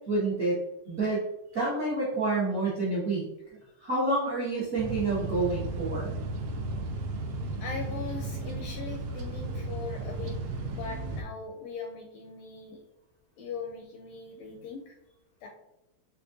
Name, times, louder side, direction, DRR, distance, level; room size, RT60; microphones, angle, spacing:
voice 1, 0.1-0.6 0.9-1.3 1.5-3.2 3.8-6.1, right 2 dB, 75° right, -9 dB, 0.7 m, -28 dB
sound 1, 4.8-11.2, right 2 dB, 90° right, 1.4 m, -34 dB
voice 2, 7.6-10.4 10.7-12.8 13.4-15.0 15.4-15.5, left 4 dB, 80° left, 2 dB, 1.5 m, -40 dB
6.2 x 2.4 x 2.6 m, 0.87 s
omnidirectional pair, 3.3 m